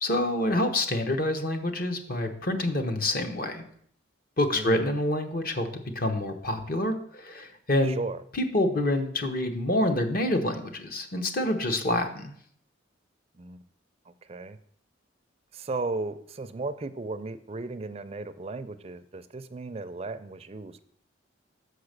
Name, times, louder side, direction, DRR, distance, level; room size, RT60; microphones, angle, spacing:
voice 1, 0.0-3.6 4.4-5.7 5.9-8.0 8.3-12.3, left 1 dB, 50° left, 6 dB, 0.9 m, -27 dB
voice 2, 4.5-5.0 7.8-8.2 13.3-13.6 14.1-14.6 15.5-20.8, right 3 dB, 30° right, 11 dB, 0.4 m, -35 dB
6.4 x 4.8 x 6.6 m, 0.65 s
head